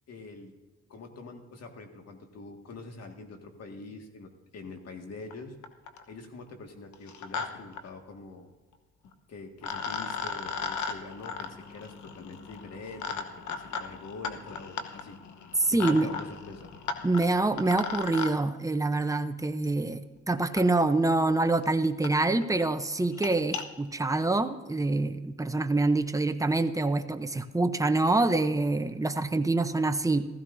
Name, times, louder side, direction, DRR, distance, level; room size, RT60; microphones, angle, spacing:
voice 1, 0.1-0.5 0.9-5.6 6.1-8.5 9.0-15.2 15.7-16.7, left 3 dB, 55° left, 4 dB, 1.9 m, -45 dB
sound 1, 5.3-5.4 5.6-6.1 6.9-7.5 7.7-7.8 9.1-9.2 9.6-18.3 19.6-19.7 20.5-20.6 21.3-21.4 21.6-21.7 22.0-22.1 22.4-22.6 23.0-23.6, left 5 dB, 75° left, 1.1 m, -36 dB
voice 2, 15.6-16.1 17.0-20.0 20.3-30.3, right 2 dB, 10° right, 9 dB, 0.7 m, -26 dB
15.5 x 15.0 x 2.7 m, 1.2 s
cardioid pair, 90°, 30 cm